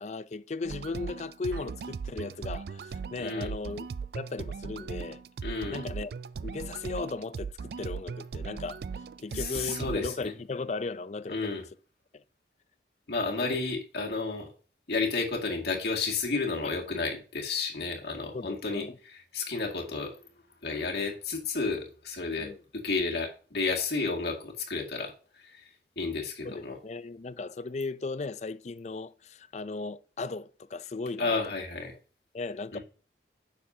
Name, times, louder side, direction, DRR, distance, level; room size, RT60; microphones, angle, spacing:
voice 1, 0.0-3.9 4.1-5.2 5.7-6.1 6.4-8.8 9.2-11.6 12.1-12.2 13.4-13.6 18.3-19.0 22.4-22.6 26.4-31.5 32.3-32.8, left 3 dB, 40° left, 0.4 m, -37 dB
sound 1, 0.6-10.1, right 5 dB, 60° right, 0.3 m, -38 dB
voice 2, 3.2-3.5 5.4-5.8 9.3-10.3 11.3-11.6 13.1-14.5 14.9-20.2 20.6-25.1 25.4-25.7 26.0-26.8 31.2-31.9 32.7-32.8, left 4 dB, 65° left, 2.1 m, -32 dB
10.0 x 7.0 x 2.8 m
head